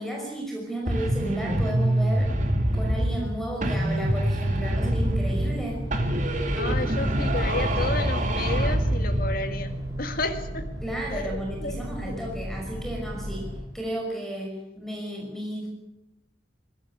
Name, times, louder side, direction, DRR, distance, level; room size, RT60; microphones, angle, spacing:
voice 1, 0.0-2.3 2.7-5.8 10.8-13.5 13.7-15.7, right 1 dB, ahead, 0 dB, 5.5 m, -33 dB
sound 1, 0.9-3.3 3.6-5.6 5.9-9.3, right 1 dB, 45° right, 2.9 m, -25 dB
sound 2, 5.0-13.6, equal, 20° right, 7.4 m, -34 dB
voice 2, 6.6-9.7 10.0-10.6 11.1-12.2 14.6-14.7, left 2 dB, 55° left, 6 dB, 2.0 m, -32 dB
20.5 x 16.5 x 9.7 m, 0.87 s
head